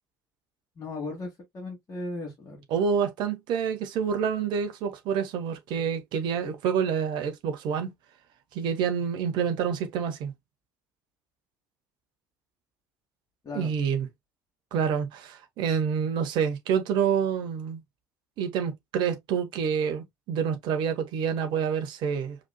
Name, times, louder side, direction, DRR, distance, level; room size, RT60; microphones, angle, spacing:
voice 1, 0.8-2.6 13.4-13.7, left 2 dB, 30° left, 2.4 m, -36 dB
voice 2, 2.7-7.9 8.5-10.3 13.5-14.1 14.7-17.8 18.4-22.4, right 7 dB, 50° right, 1.2 m, -27 dB
5.0 x 4.2 x 2.2 m
figure-of-eight pair, 60°, 10 cm